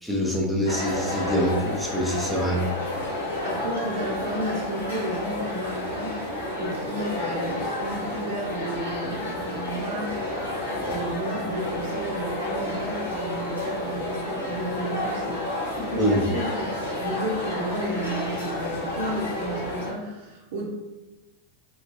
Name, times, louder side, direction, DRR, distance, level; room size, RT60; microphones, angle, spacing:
voice 1, 0.0-2.6 16.0-16.2, equal, ahead, -3 dB, 0.6 m, -25 dB
sound 1, 0.7-19.9, left 1 dB, 85° left, 1.0 m, -30 dB
voice 2, 3.4-6.2 6.5-10.3 10.8-16.7 17.0-20.7, right 1 dB, 65° right, -1 dB, 0.8 m, -32 dB
3.2 x 2.2 x 2.5 m, 1.1 s
figure-of-eight pair, 90°, 0 cm